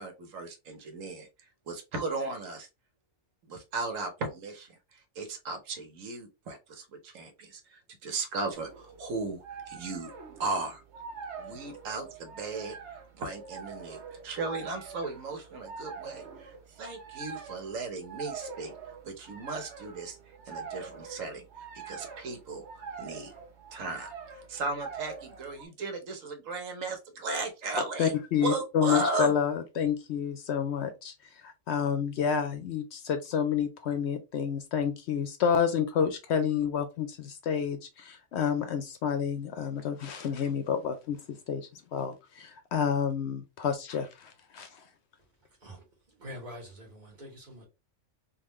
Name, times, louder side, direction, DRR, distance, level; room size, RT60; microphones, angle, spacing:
voice 1, 0.0-2.7 3.5-10.1 10.4-10.8 11.4-12.8 13.2-18.7 19.0-21.4 21.7-23.3 23.7-29.3, right 3 dB, 80° right, 1.3 m, -36 dB
sound 1, 8.5-25.6, right 5 dB, 60° right, 1.1 m, -45 dB
voice 2, 28.0-41.2 41.5-44.8, left 7 dB, 65° left, 0.8 m, -29 dB
voice 3, 45.6-47.7, equal, 35° right, 1.6 m, -45 dB
3.6 x 2.5 x 3.0 m
omnidirectional pair, 1.3 m